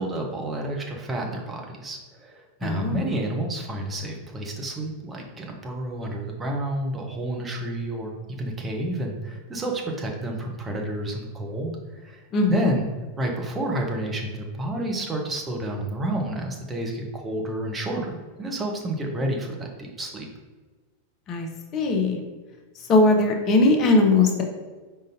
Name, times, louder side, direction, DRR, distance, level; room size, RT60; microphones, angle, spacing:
voice 1, 0.0-12.2 12.5-12.9 13.2-20.3, right 1 dB, 15° right, 0 dB, 0.7 m, -30 dB
voice 2, 2.6-3.0 12.3-12.8 21.3-22.2 22.9-24.4, left 2 dB, 30° left, 3 dB, 0.7 m, -20 dB
5.1 x 3.7 x 2.7 m, 1.3 s
figure-of-eight pair, 90°, 0 cm